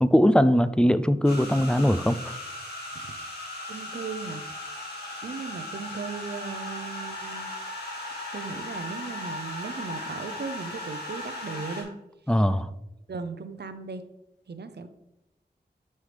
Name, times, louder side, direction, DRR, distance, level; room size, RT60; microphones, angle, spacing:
voice 1, 0.0-2.3 12.3-12.7, equal, 5° left, 13 dB, 0.3 m, -21 dB
sound 1, 1.2-11.8, left 1 dB, 65° left, 2.2 m, -37 dB
voice 2, 3.7-4.5 5.2-7.5 8.3-11.9 12.3-12.4 13.1-14.0 14.5-14.9, right 5 dB, 70° right, 10 dB, 0.6 m, -37 dB
9.3 x 5.6 x 3.3 m, 0.93 s
wide cardioid pair, 75°, 17 cm